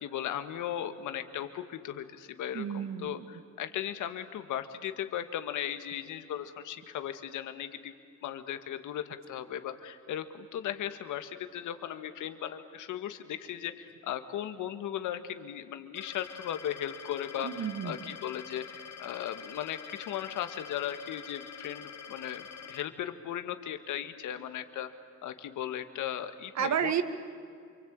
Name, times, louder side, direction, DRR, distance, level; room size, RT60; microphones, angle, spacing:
voice 1, 0.0-7.9 8.2-24.9 25.2-26.9, left 10 dB, 80° left, 9 dB, 1.8 m, -37 dB
voice 2, 2.5-3.3 17.4-18.1 26.6-27.0, right 8 dB, 65° right, 11 dB, 1.9 m, -31 dB
sound 1, 16.0-22.8, left 7 dB, 60° left, 1.8 m, -46 dB
28.0 x 24.0 x 8.8 m, 2.3 s
cardioid pair, 90°, 30 cm